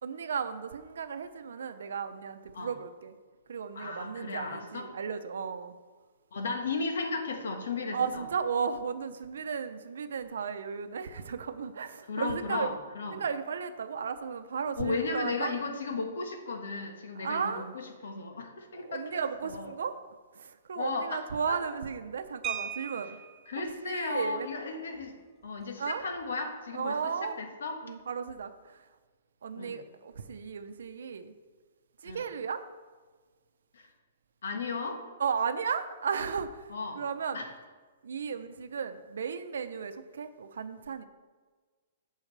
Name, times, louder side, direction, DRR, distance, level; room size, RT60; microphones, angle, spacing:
voice 1, 0.0-3.1 3.5-5.7 7.9-12.7 13.1-15.5 17.2-17.7 18.9-20.0 20.4-23.2 23.8-24.5 25.8-26.0 26.7-27.3 27.8-28.8 29.4-31.3 32.0-32.6 35.2-36.7 37.0-37.4 38.0-41.0, right 6 dB, 80° right, 9 dB, 0.7 m, -34 dB
voice 2, 3.7-4.9 6.3-8.3 12.1-13.2 14.8-19.1 19.4-19.7 20.8-21.6 23.5-25.1 25.4-27.8 29.5-29.8 32.0-32.2 33.7-33.9 34.4-35.0 36.7-37.0 37.3-37.5, left 3 dB, 85° left, 4 dB, 1.6 m, -35 dB
sound 1, 22.4-23.5 25.0-25.1 25.4-25.6 26.0-26.3, right 9 dB, 15° right, 0.4 m, -38 dB
15.5 x 5.6 x 3.4 m, 1.4 s
hypercardioid pair, 175°, 0 cm